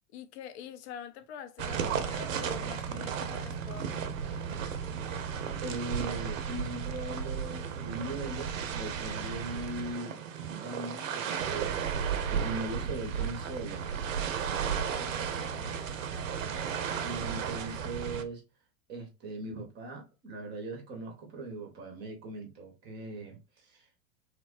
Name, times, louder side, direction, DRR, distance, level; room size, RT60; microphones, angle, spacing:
voice 1, 0.1-4.4 14.9-15.9, left 9 dB, 50° left, 0.5 m, -46 dB
sound 1, 1.6-18.2, right 7 dB, 60° right, 0.6 m, -34 dB
voice 2, 5.5-10.2 10.6-14.1 17.0-18.4 18.9-23.9, right 2 dB, 25° right, 0.7 m, -40 dB
3.0 x 2.1 x 2.4 m
figure-of-eight pair, 95°, 44 cm